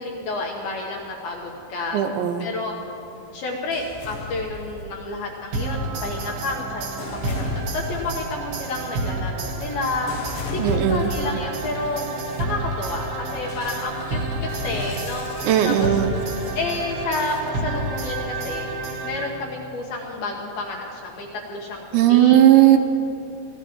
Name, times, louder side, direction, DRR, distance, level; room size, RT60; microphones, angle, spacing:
voice 1, 0.0-2.0 2.4-2.7 3.3-6.9 7.2-10.1 10.5-12.1 12.4-15.3 15.6-15.7 16.5-18.7 19.0-21.8 22.1-22.4, left 2 dB, 70° left, -1 dB, 2.4 m, -30 dB
voice 2, 1.9-2.5 10.6-11.1 15.4-16.2 21.9-22.8, right 11 dB, 85° right, 7 dB, 2.8 m, -16 dB
sound 1, 3.7-5.3 6.0-11.5 12.1-12.4 13.5-17.5, left 4 dB, 90° left, 2.0 m, -37 dB
sound 2, 5.5-19.6, right 2 dB, 65° right, 3.4 m, -30 dB
27.0 x 17.5 x 3.0 m, 2.8 s
omnidirectional pair, 5.5 m